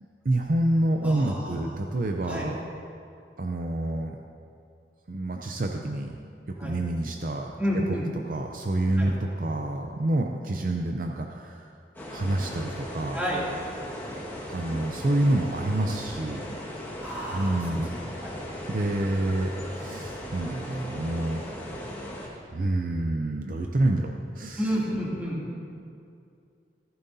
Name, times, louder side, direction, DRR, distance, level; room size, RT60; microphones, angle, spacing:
voice 1, 0.2-2.6 3.4-4.2 5.1-6.2 6.5-8.0 8.3-11.7 12.1-13.2 14.5-16.5 17.3-17.9 18.7-21.4 22.5-24.7, right 1 dB, 50° right, 2 dB, 0.6 m, -28 dB
voice 2, 1.0-1.6 2.2-2.4 6.6-6.7 7.6-8.1 9.0-9.1 13.1-13.4 17.0-17.8 18.2-18.3 24.6-25.4, equal, 10° right, -7 dB, 2.6 m, -30 dB
sound 1, 11.9-22.3, left 1 dB, 10° left, 1.6 m, -38 dB
14.5 x 14.5 x 2.7 m, 2.5 s
head